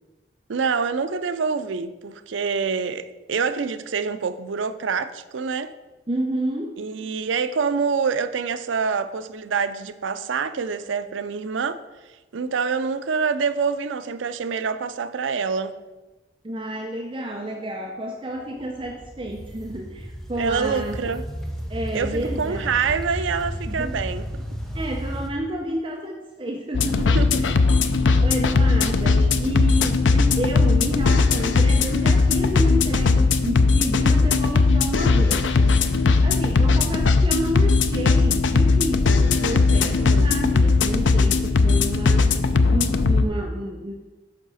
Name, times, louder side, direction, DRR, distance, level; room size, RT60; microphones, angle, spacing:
voice 1, 0.5-5.7 6.8-11.8 12.3-15.7 20.4-21.2 21.9-24.4 27.1-27.6 29.1-29.5 39.9-40.3, right 5 dB, 90° right, 0.5 m, -26 dB
voice 2, 6.1-6.7 16.4-21.0 21.7-22.8 23.7-24.0 24.7-27.6 28.2-35.5 36.2-42.2 42.7-43.9, right 1 dB, 25° right, 0.6 m, -30 dB
sound 1, 18.4-25.3, equal, ahead, 0.9 m, -33 dB
sound 2, 26.7-43.3, left 4 dB, 85° left, 0.5 m, -18 dB
9.6 x 6.3 x 4.1 m
head